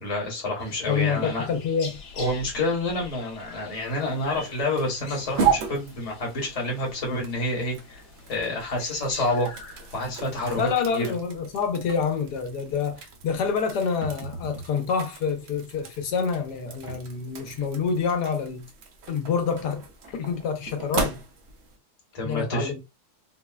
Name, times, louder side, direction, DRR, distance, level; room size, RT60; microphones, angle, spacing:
voice 1, 0.0-1.5 2.2-8.0 8.3-10.6 10.9-11.0 22.1-22.7, left 1 dB, 25° left, 0.9 m, -28 dB
sound 1, 0.6-10.7, left 4 dB, 65° left, 1.1 m, -45 dB
voice 2, 0.9-2.0 10.6-18.6 19.1-21.2 22.2-22.8, left 6 dB, 90° left, 1.2 m, -27 dB
sound 2, 3.7-21.8, right 6 dB, 70° right, 0.6 m, -35 dB
4.0 x 2.0 x 2.2 m
omnidirectional pair, 1.7 m